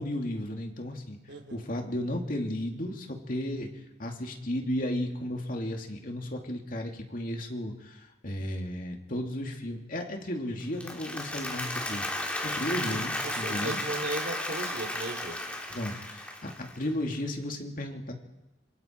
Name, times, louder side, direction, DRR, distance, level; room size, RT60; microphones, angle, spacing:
voice 1, 0.0-3.7 4.0-12.1 12.4-13.8 15.7-18.1, left 1 dB, 50° left, 2 dB, 2.7 m, -34 dB
voice 2, 1.3-1.7 12.9-15.4, right 2 dB, 70° right, 4 dB, 2.9 m, -37 dB
Applause, 10.6-16.8, left 1 dB, 5° left, 2.8 m, -34 dB
26.0 x 25.5 x 4.6 m, 0.96 s
head